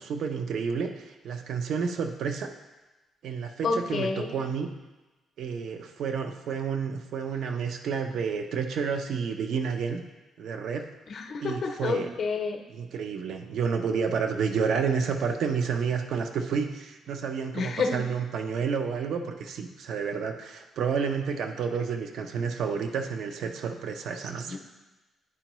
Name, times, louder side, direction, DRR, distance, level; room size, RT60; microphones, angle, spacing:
voice 1, 0.0-2.5 3.2-4.7 5.4-10.0 10.4-10.8 11.4-12.1 12.7-24.6, right 6 dB, 70° right, 6 dB, 0.5 m, -30 dB
voice 2, 3.6-4.3 11.1-12.6 17.5-18.1 24.5-24.6, left 4 dB, 60° left, 5 dB, 0.6 m, -29 dB
9.9 x 4.5 x 3.0 m, 1.1 s
cardioid pair, 90°, 0 cm